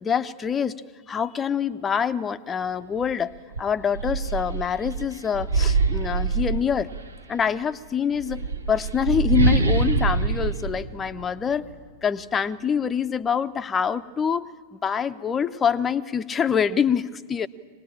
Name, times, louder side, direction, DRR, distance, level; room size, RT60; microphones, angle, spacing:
voice 1, 0.0-0.8 1.1-6.9 7.3-11.7 12.0-14.5 14.7-17.5, left 7 dB, 20° left, 13 dB, 0.7 m, -25 dB
sound 1, 3.0-3.1 3.5-7.2 8.1-11.7, right 4 dB, 75° right, 1.1 m, -24 dB
24.0 x 19.5 x 8.7 m, 1.5 s
figure-of-eight pair, 90°, 0 cm